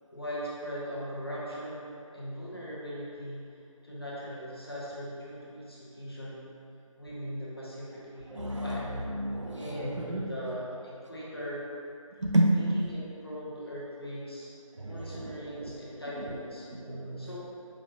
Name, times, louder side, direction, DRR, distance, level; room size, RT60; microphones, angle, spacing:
voice 1, 0.1-3.4 3.8-6.5 7.0-8.9 9.5-11.6 12.4-14.5 14.8-16.7 17.2-17.4, equal, 45° left, -7 dB, 0.8 m, -40 dB
voice 2, 8.3-10.2 12.2-12.5 14.8-15.7 16.2-16.4 16.7-17.3, right 1 dB, 60° right, -1 dB, 0.5 m, -31 dB
4.9 x 2.4 x 2.7 m, 2.6 s
figure-of-eight pair, 170°, 18 cm